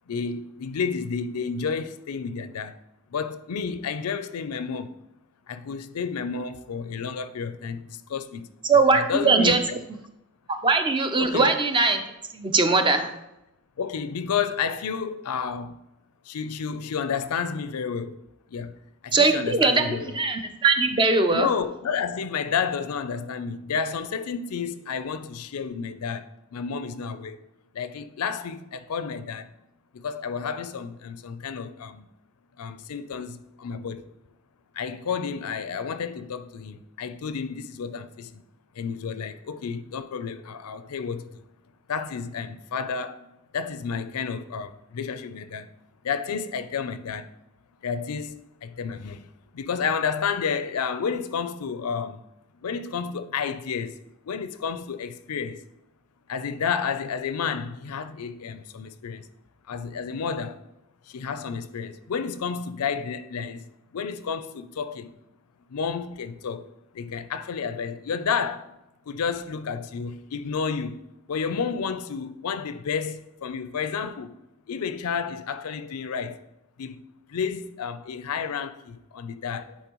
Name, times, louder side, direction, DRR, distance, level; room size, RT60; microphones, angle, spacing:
voice 1, 0.1-2.8 3.1-5.0 5.5-8.5 8.9-9.8 11.2-11.5 13.8-15.8 16.2-18.2 18.5-18.7 19.0-20.2 21.3-27.4 27.7-29.5 29.9-32.1 32.6-34.0 34.7-38.4 38.8-41.4 41.9-45.7 46.0-47.3 47.8-49.3 49.5-52.2 52.6-55.6 56.3-59.3 59.7-60.6 61.1-63.7 63.9-65.1 65.7-68.8 69.1-71.0 71.3-74.3 74.7-76.4 76.8-77.0 77.3-79.8, left 6 dB, 80° left, 0.5 m, -31 dB
voice 2, 8.6-9.6 10.6-12.0 12.3-13.1 19.1-21.5, right 3 dB, 20° right, 0.5 m, -21 dB
10.5 x 4.4 x 3.0 m
head